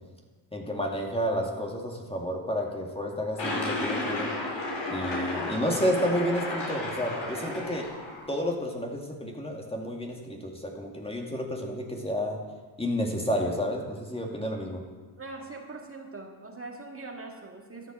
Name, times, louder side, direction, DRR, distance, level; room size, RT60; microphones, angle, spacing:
voice 1, 0.5-4.3 4.9-7.9 8.3-12.4 12.8-14.8, equal, 15° left, 0 dB, 2.1 m, -30 dB
sound 1, 3.4-8.3, left 2 dB, 65° left, 4.5 m, -33 dB
voice 2, 15.2-17.9, right 3 dB, 30° right, 1 dB, 1.9 m, -42 dB
13.0 x 7.3 x 6.2 m, 1.4 s
cardioid pair, 70°, 44 cm